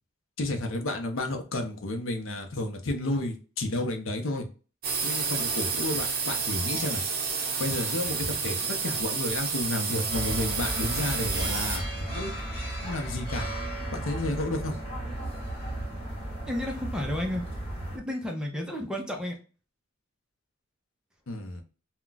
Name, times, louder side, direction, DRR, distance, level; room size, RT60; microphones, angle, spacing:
voice 1, 0.4-4.5 5.0-7.0 7.6-11.8 12.1-12.3 12.8-13.5 13.9-14.8 21.3-21.6, left 1 dB, 75° left, 5 dB, 0.6 m, -31 dB
sound 1, 4.8-11.8, right 5 dB, 45° right, 0.6 m, -30 dB
sound 2, 10.1-18.0, right 1 dB, 30° left, 1.2 m, -34 dB
voice 2, 16.5-17.4 17.9-19.3, left 1 dB, 5° right, 1 dB, 0.5 m, -32 dB
2.3 x 2.2 x 3.8 m, 0.36 s
head